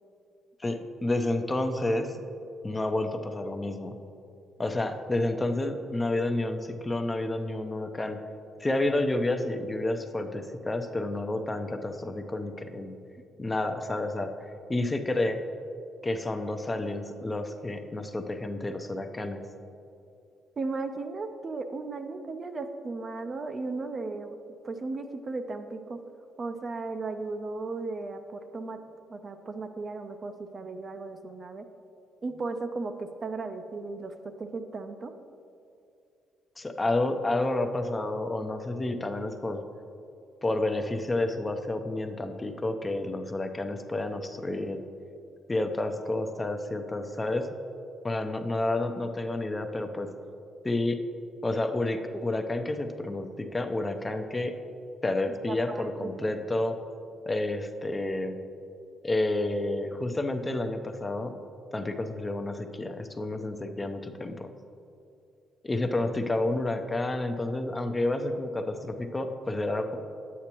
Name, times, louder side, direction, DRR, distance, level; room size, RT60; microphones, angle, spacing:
voice 1, 0.6-2.1 2.6-3.9 4.6-8.2 8.6-12.9 13.4-14.3 14.7-15.4 16.0-19.4 36.6-39.6 40.4-44.8 45.5-47.5 48.0-50.1 50.6-51.0 51.4-54.6 55.0-56.8 57.3-58.4 59.0-61.3 61.7-64.5 65.6-70.0, left 2 dB, 20° left, 6 dB, 0.6 m, -30 dB
voice 2, 20.6-24.4 24.6-26.0 26.4-28.8 29.1-31.7 32.2-35.1 55.5-56.3, right 3 dB, 40° right, 7 dB, 0.5 m, -36 dB
9.3 x 8.3 x 3.0 m, 2.6 s
cardioid pair, 90°, 0 cm